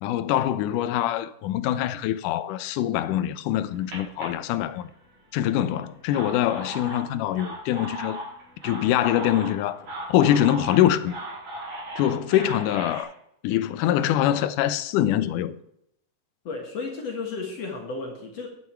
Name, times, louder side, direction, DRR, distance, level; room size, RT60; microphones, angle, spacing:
voice 1, 0.0-4.9 5.3-8.2 8.6-9.8 10.1-11.2 12.0-13.1 13.4-15.6, left 12 dB, 85° left, 2.2 m, -24 dB
sound 1, 3.5-5.2 5.9-13.0, right 1 dB, 60° right, 5.6 m, -37 dB
voice 2, 16.4-18.5, left 4 dB, 55° left, 2.7 m, -33 dB
12.0 x 11.0 x 4.5 m
omnidirectional pair, 3.6 m